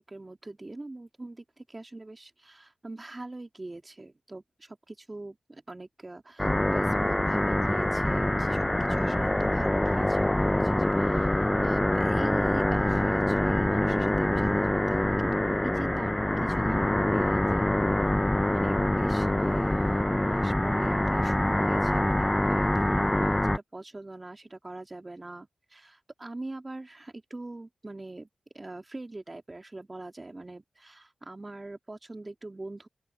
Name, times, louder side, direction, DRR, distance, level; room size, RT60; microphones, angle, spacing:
voice 1, 0.0-15.4 15.6-17.6 18.5-28.3 28.5-32.9, right 2 dB, 30° right, 2.5 m, -42 dB
sound 1, 6.4-23.6, left 1 dB, 15° left, 0.4 m, -25 dB
Car, 7.7-13.2, left 4 dB, 55° left, 7.0 m, -57 dB
open air
wide cardioid pair, 75°, 0 cm